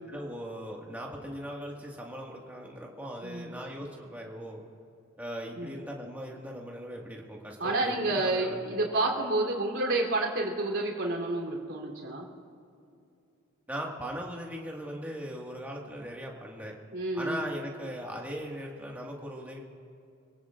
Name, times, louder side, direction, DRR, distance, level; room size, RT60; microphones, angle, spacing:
voice 1, 0.1-4.6 5.2-8.6 13.7-16.7 17.1-19.6, equal, 10° right, -2 dB, 1.8 m, -39 dB
voice 2, 3.2-3.5 5.6-5.7 7.6-12.3 16.9-17.4, right 2 dB, 65° right, -2 dB, 3.3 m, -29 dB
26.0 x 17.5 x 2.5 m, 2.5 s
head